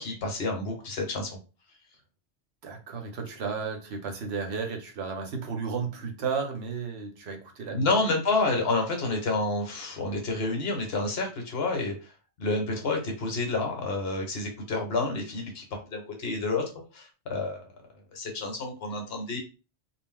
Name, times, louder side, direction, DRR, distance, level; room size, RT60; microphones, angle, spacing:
voice 1, 0.0-1.4 7.7-11.9 12.4-15.6 15.9-16.6 16.9-17.6 18.1-19.4, left 3 dB, 65° left, 1.0 m, -29 dB
voice 2, 2.6-7.9, right 5 dB, 70° right, 0.9 m, -33 dB
2.2 x 2.0 x 3.6 m
omnidirectional pair, 1.2 m